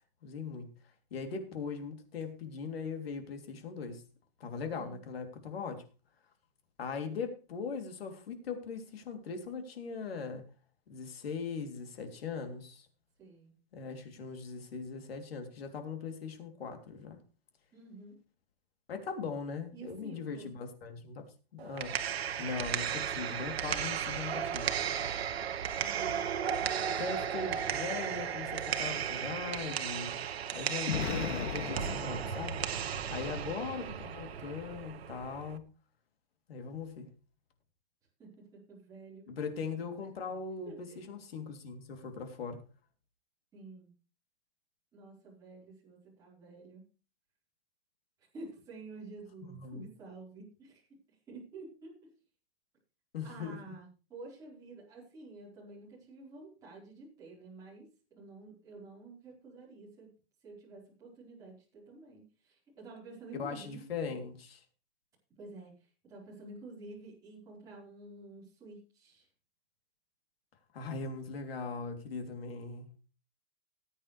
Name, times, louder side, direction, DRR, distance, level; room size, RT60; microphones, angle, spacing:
voice 1, 0.2-0.7 1.1-4.0 4.4-5.8 6.8-10.4 10.9-12.9 13.7-17.2 18.9-21.3 21.5-22.0 22.4-24.7 27.0-30.2 30.5-32.6 33.1-35.7 36.5-37.1 39.3-42.6 49.5-49.9 53.1-53.6 63.3-64.6 70.7-72.9, left 5 dB, 65° left, 3.2 m, -40 dB
voice 2, 13.2-13.5 17.7-18.2 19.7-20.5 25.8-26.3 33.2-33.5 38.2-39.3 40.6-41.0 43.5-43.9 44.9-46.9 48.3-52.1 53.2-60.1 60.4-64.2 65.4-69.3, right 3 dB, 10° right, 4.5 m, -50 dB
sound 1, 21.6-35.6, right 8 dB, 75° right, 1.5 m, -35 dB
Explosion, 30.9-33.0, left 5 dB, 85° left, 2.3 m, -37 dB
19.0 x 8.8 x 3.3 m
hypercardioid pair, 180°, 32 cm